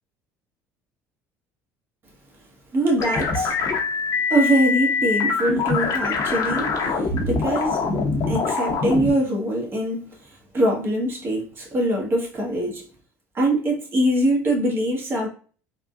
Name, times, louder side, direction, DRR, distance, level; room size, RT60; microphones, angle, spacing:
voice 1, 2.7-3.6 4.3-7.8 8.3-10.2 10.5-12.8 13.3-15.3, right 1 dB, 35° right, 1.3 m, -23 dB
sound 1, 3.0-9.1, left 4 dB, 55° left, 0.8 m, -24 dB
3.6 x 2.3 x 2.4 m
supercardioid pair, 100°, 7 cm